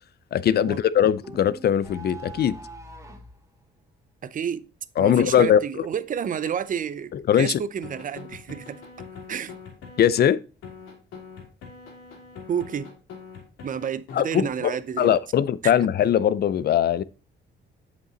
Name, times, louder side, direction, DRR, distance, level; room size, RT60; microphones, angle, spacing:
voice 1, 0.3-2.6 5.0-5.9 7.1-7.6 10.0-10.4 14.1-17.0, left 9 dB, 55° left, 0.5 m, -21 dB
sound 1, 1.2-3.4, right 2 dB, 15° right, 1.5 m, -42 dB
voice 2, 4.2-4.6 5.0-8.8 9.3-9.5 12.5-12.9 13.6-15.2, right 8 dB, 40° right, 0.6 m, -30 dB
sound 2, 7.8-10.3 10.6-14.2, left 5 dB, 90° left, 2.5 m, -42 dB
7.6 x 5.3 x 4.0 m
cardioid pair, 90°, 20 cm